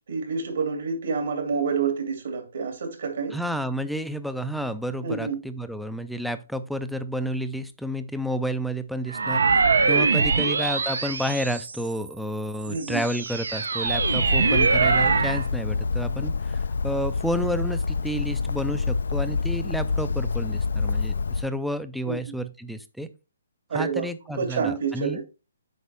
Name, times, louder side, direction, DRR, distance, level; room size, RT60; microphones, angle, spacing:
voice 1, 0.1-3.4 5.0-5.4 10.2-10.4 12.7-13.0 22.0-22.2 23.7-25.2, right 5 dB, 60° right, 2.6 m, -28 dB
voice 2, 3.3-23.1 23.7-25.2, equal, ahead, 0.4 m, -30 dB
sound 1, 9.1-12.0 12.6-15.5, right 4 dB, 85° right, 1.0 m, -23 dB
Bird, 13.8-21.5, left 4 dB, 80° left, 0.3 m, -27 dB
8.1 x 5.2 x 3.4 m
hypercardioid pair, 170°, 0 cm